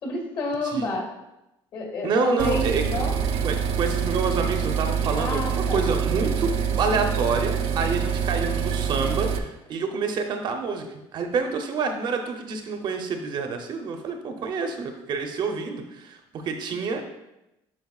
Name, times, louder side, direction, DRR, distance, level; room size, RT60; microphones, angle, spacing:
voice 1, 0.0-1.1 1.7-3.2 5.2-5.9, left 2 dB, 50° left, 0 dB, 2.1 m, -29 dB
voice 2, 2.0-2.8 3.4-10.9 11.1-17.0, right 5 dB, 50° right, 4 dB, 0.7 m, -28 dB
sound 1, 2.4-9.4, right 7 dB, 85° right, 0.6 m, -26 dB
9.6 x 4.5 x 2.4 m, 0.91 s
cardioid pair, 160°, 10 cm